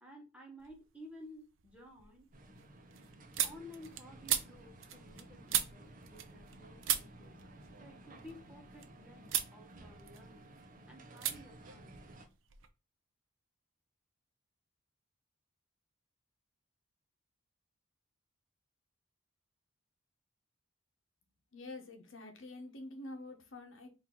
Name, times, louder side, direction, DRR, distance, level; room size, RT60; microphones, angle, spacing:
voice 1, 0.0-2.3 3.4-7.4 7.8-10.5 10.9-11.9, left 1 dB, 5° right, 1.1 m, -54 dB
sound 1, 0.6-1.1 1.5-6.6 6.8-8.9 9.3-9.6 9.9-10.7 11.2-11.4 11.6-12.7, right 10 dB, 75° right, 0.6 m, -38 dB
sound 2, 2.3-12.3, right 1 dB, 40° right, 0.8 m, -55 dB
voice 2, 21.5-23.9, left 2 dB, 75° left, 1.0 m, -47 dB
4.4 x 2.6 x 3.7 m
head